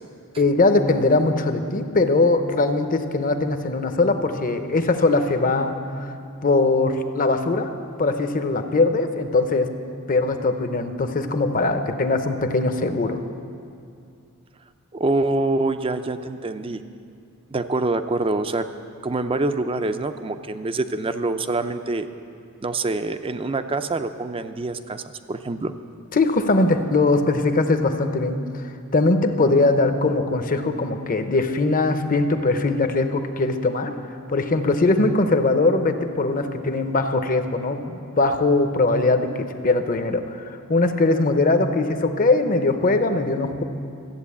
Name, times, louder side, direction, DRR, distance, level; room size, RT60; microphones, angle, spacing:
voice 1, 0.4-6.1 6.4-9.7 10.1-13.2 26.1-28.4 28.9-33.9 34.3-43.6, left 3 dB, 40° left, 7 dB, 0.8 m, -21 dB
voice 2, 14.9-16.8 17.5-18.7 19.0-22.1 22.6-25.0 25.3-25.7, right 2 dB, 25° right, 10 dB, 0.5 m, -25 dB
13.5 x 8.2 x 8.4 m, 2.4 s
head